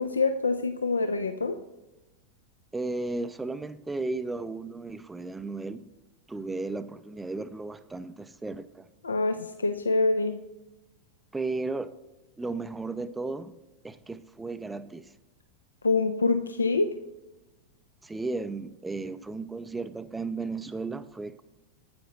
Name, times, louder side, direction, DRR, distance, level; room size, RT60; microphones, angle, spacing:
voice 1, 0.0-1.6 9.0-10.5 15.8-16.9, left 3 dB, 75° left, 0.4 m, -26 dB
voice 2, 2.7-5.8 6.3-8.9 11.3-11.9 12.4-13.6 13.8-15.1 18.0-21.4, right 3 dB, 10° right, 0.4 m, -34 dB
9.4 x 8.6 x 3.0 m
figure-of-eight pair, 90°, 0 cm